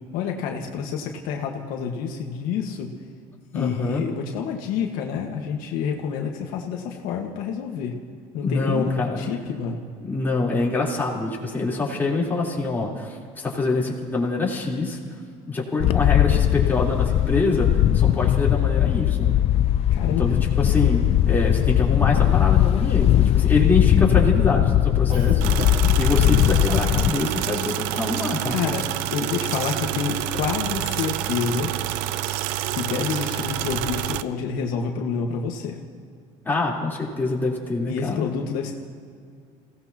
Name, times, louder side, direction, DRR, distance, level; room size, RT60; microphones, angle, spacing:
voice 1, 0.1-2.9 3.5-7.9 8.3-9.8 19.9-20.2 28.5-28.8 29.1-31.7 32.7-35.8 37.9-38.7, left 6 dB, 75° left, 1 dB, 1.6 m, -28 dB
voice 2, 3.5-4.0 8.4-9.3 10.0-15.0 15.5-19.4 20.0-28.6 36.5-38.3, left 3 dB, 15° left, -5 dB, 3.7 m, -25 dB
Wind, 15.8-27.1, left 12 dB, 45° left, 0.5 m, -19 dB
Cough, 25.1-26.0 26.7-26.9 27.9-28.1 28.4-28.6, right 2 dB, 45° right, 4.5 m, -35 dB
sound 1, 25.4-34.2, right 13 dB, 85° right, 0.6 m, -28 dB
27.5 x 17.5 x 2.9 m, 2.2 s
cardioid pair, 130°, 14 cm